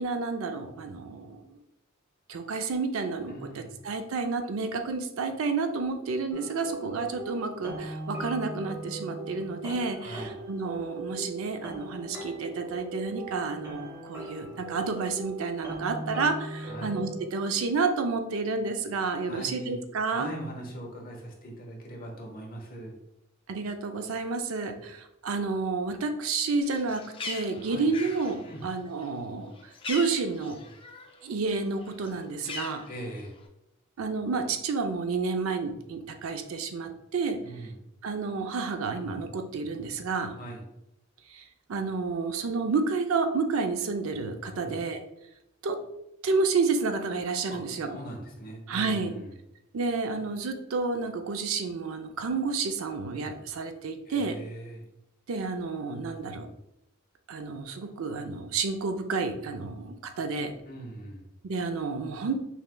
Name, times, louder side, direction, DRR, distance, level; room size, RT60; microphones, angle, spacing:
voice 1, 0.0-1.4 2.3-20.3 23.5-29.5 29.9-30.6 31.2-32.9 34.0-37.4 38.0-40.3 41.3-41.4 41.7-45.0 45.6-45.8 46.2-48.0 48.7-49.1 49.7-54.4 55.3-56.5 57.3-60.5 61.4-62.4, right 4 dB, 75° right, 6 dB, 0.5 m, -30 dB
voice 2, 3.3-3.8 10.0-10.4 16.6-17.0 19.2-22.9 27.6-27.9 28.4-28.7 32.9-33.3 37.4-37.8 40.3-40.7 44.5-44.8 47.5-49.3 54.0-54.8 60.7-61.3, right 1 dB, 45° left, 0 dB, 1.0 m, -41 dB
sound 1, 6.3-17.3, right 2 dB, 15° right, 1.0 m, -39 dB
Bird, 26.6-31.2 31.5-33.4, left 3 dB, 25° left, 0.4 m, -41 dB
5.5 x 3.1 x 2.2 m, 0.85 s
head